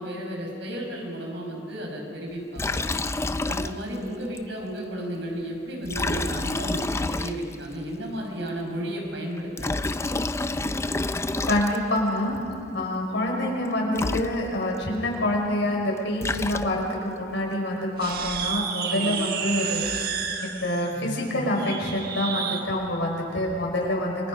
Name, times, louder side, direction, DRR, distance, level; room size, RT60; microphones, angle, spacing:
voice 1, 0.0-2.8 3.5-9.8 19.0-19.2, equal, 80° right, 0 dB, 5.5 m, -33 dB
Liquid, 2.6-4.1 4.4-4.5 5.8-7.7 9.4-12.0 13.7-13.8 13.9-14.8 15.9-17.1, left 2 dB, 15° left, 0.4 m, -29 dB
voice 2, 11.4-12.4 12.7-19.8 20.4-24.3, left 1 dB, 90° left, -1 dB, 5.3 m, -26 dB
sound 1, 18.0-22.7, right 7 dB, 55° right, 1.3 m, -31 dB
29.0 x 22.5 x 5.2 m, 2.7 s
head